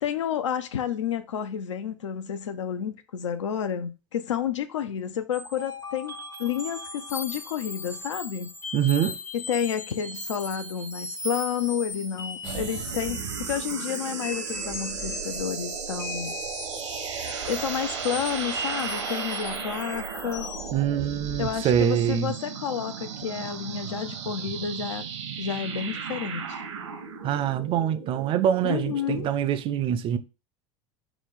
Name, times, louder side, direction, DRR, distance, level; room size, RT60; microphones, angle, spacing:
voice 1, 0.0-8.5 9.3-16.3 17.5-20.5 21.4-25.0 25.4-26.6 28.6-29.3, left 8 dB, 75° left, 0.4 m, -30 dB
sound 1, 5.3-20.8, left 2 dB, 15° left, 0.5 m, -38 dB
voice 2, 8.7-9.2 20.7-22.4 27.2-30.2, right 10 dB, 35° right, 0.4 m, -25 dB
sound 2, 12.4-29.3, right 6 dB, 70° right, 0.7 m, -35 dB
3.9 x 2.1 x 4.5 m
figure-of-eight pair, 75°, 16 cm